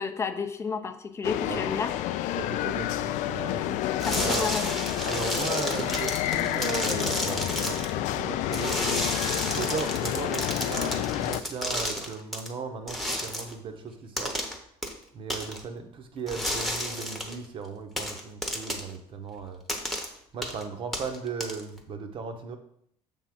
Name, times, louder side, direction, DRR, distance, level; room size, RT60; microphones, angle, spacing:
voice 1, 0.0-1.9 4.1-4.7, left 5 dB, 20° left, 8 dB, 0.6 m, -31 dB
sound 1, 1.2-11.4, left 13 dB, 65° left, 0.4 m, -29 dB
voice 2, 1.4-1.7 2.3-4.5 5.0-8.8 9.0-14.4 15.1-19.6 20.3-22.6, right 5 dB, 40° right, 6 dB, 0.9 m, -37 dB
sound 2, 4.0-7.9 8.5-12.5 12.9-13.5 14.2-14.6 14.8-14.9 15.3-15.6 16.3-17.4 18.0-18.9 19.7-20.1 20.4-20.6 20.9-21.8, equal, ahead, 1.0 m, -32 dB
7.0 x 3.6 x 6.0 m, 0.69 s
cardioid pair, 150°, 13 cm